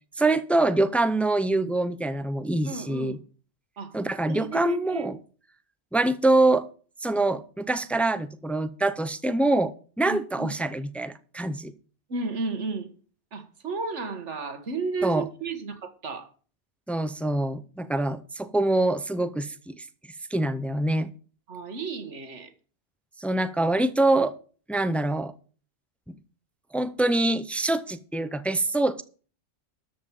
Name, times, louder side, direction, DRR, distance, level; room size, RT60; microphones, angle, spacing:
voice 1, 0.2-3.2 3.9-5.2 5.9-6.7 7.0-9.7 10.0-11.7 15.0-15.3 16.9-19.8 20.3-21.1 23.2-24.3 24.7-25.3 26.1-26.2 26.7-29.0, right 2 dB, ahead, 0.3 m, -25 dB
voice 2, 2.6-3.2 3.8-4.0 4.3-5.1 10.0-10.5 12.1-12.9 13.3-16.3 21.5-22.5, right 4 dB, 85° right, 1.8 m, -33 dB
13.0 x 5.3 x 7.2 m
omnidirectional pair, 1.2 m